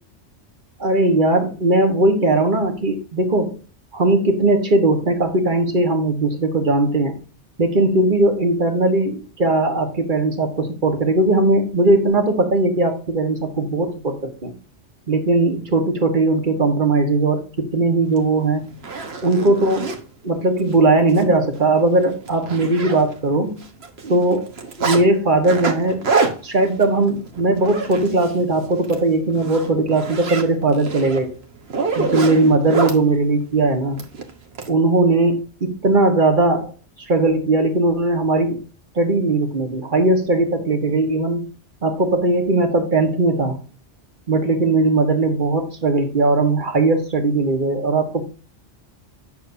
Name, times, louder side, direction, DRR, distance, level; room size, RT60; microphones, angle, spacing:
voice 1, 0.8-3.6 3.9-7.1 7.6-14.5 15.1-18.7 19.2-19.9 20.2-23.6 24.0-24.5 24.8-26.1 26.4-31.3 31.9-34.0 34.7-36.7 37.0-38.6 38.9-41.5 41.8-43.6 44.3-48.2, right 2 dB, 45° right, 4 dB, 1.6 m, -19 dB
Zipper (clothing), 18.2-18.3 18.7-20.0 20.6-20.7 21.1-21.2 21.6-21.7 22.0-23.4 23.6-25.0 25.4-28.4 28.7-29.0 29.4-33.0 34.0-34.7, right 4 dB, 65° right, 1.5 m, -26 dB
9.1 x 6.6 x 2.7 m, 0.35 s
omnidirectional pair, 1.2 m